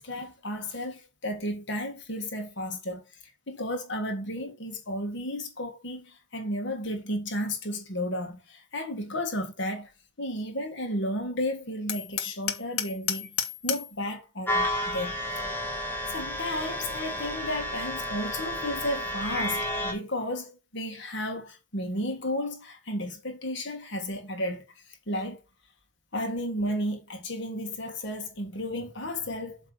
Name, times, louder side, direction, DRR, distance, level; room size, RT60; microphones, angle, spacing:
voice 1, 0.0-3.0 3.5-9.9 10.2-13.4 13.6-15.5 16.1-25.4 26.1-29.6, left 1 dB, 55° left, 1.6 m, -33 dB
Hammer, 11.9-14.0, left 10 dB, 85° left, 0.9 m, -32 dB
sound 1, 14.5-19.9, left 1 dB, 10° left, 1.3 m, -31 dB
7.8 x 3.3 x 4.7 m
head